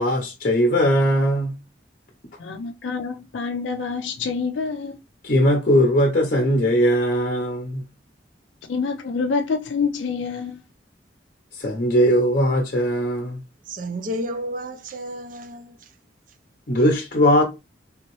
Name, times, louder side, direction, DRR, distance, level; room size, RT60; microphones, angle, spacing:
voice 1, 0.0-1.5 5.2-7.8 11.5-13.4 16.7-17.4, equal, 45° left, 0.6 m, -19 dB
voice 2, 2.4-4.9 8.6-10.6, left 5 dB, 85° left, 0.4 m, -27 dB
voice 3, 13.7-15.8, equal, 45° right, 0.5 m, -31 dB
3.5 x 2.9 x 3.0 m
head